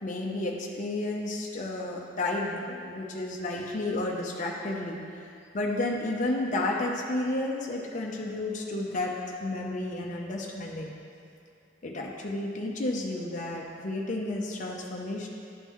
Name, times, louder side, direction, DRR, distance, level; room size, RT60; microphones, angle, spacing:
voice 1, 0.0-5.0 5.5-9.1 9.4-11.0 11.8-15.3, left 2 dB, 40° left, -1 dB, 0.6 m, -31 dB
11.0 x 3.7 x 3.0 m, 2.5 s
head